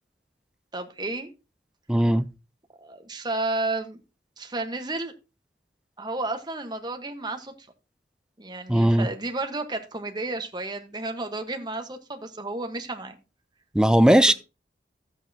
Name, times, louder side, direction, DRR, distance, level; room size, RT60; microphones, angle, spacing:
voice 1, 0.7-1.3 2.8-4.0 4.4-5.1 6.0-7.7 8.4-13.2 14.3-14.4, right 2 dB, 25° right, 1.2 m, -32 dB
voice 2, 1.9-2.3 8.7-9.1 13.7-14.3, right 1 dB, 5° right, 0.4 m, -18 dB
12.5 x 8.3 x 2.8 m
head